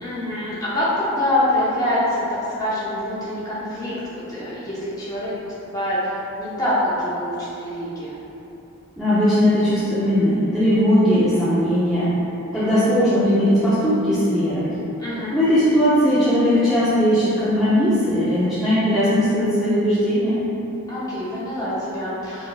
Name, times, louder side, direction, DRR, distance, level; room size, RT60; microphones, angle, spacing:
voice 1, 0.0-8.2 15.0-15.4 20.9-22.5, left 1 dB, 15° left, -9 dB, 0.8 m, -25 dB
voice 2, 9.0-12.1 12.5-14.8 15.3-20.4, equal, ahead, -14 dB, 0.5 m, -18 dB
4.1 x 3.4 x 2.4 m, 3.0 s
head